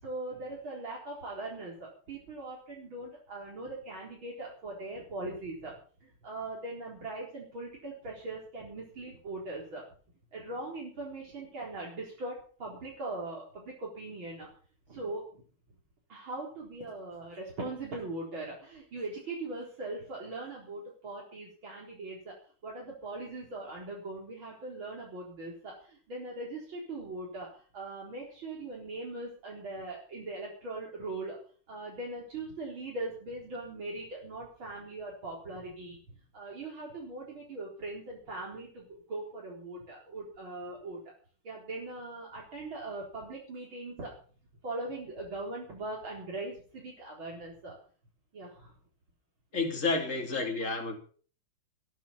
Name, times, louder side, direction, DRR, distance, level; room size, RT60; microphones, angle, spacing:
voice 1, 0.0-5.8 6.0-9.8 10.3-14.5 14.9-15.2 16.1-22.4 22.6-31.4 31.7-41.0 41.4-44.2 44.6-47.8 48.3-48.7, right 2 dB, 65° right, -3 dB, 5.2 m, -40 dB
voice 2, 49.5-51.0, left 3 dB, 35° left, 1 dB, 3.5 m, -30 dB
20.5 x 10.5 x 5.8 m, 0.43 s
omnidirectional pair, 2.4 m